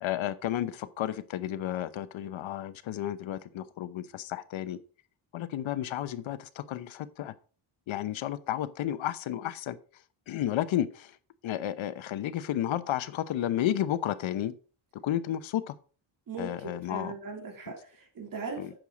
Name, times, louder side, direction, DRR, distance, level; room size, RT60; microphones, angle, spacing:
voice 1, 0.0-4.8 5.3-7.3 7.9-9.8 10.3-11.1 11.4-14.5 14.9-15.7 16.4-17.1 18.6-18.7, left 12 dB, 70° left, 0.9 m, -32 dB
voice 2, 16.3-18.8, right 4 dB, 45° right, 2.7 m, -39 dB
9.0 x 6.5 x 5.1 m
wide cardioid pair, 165°, 48 cm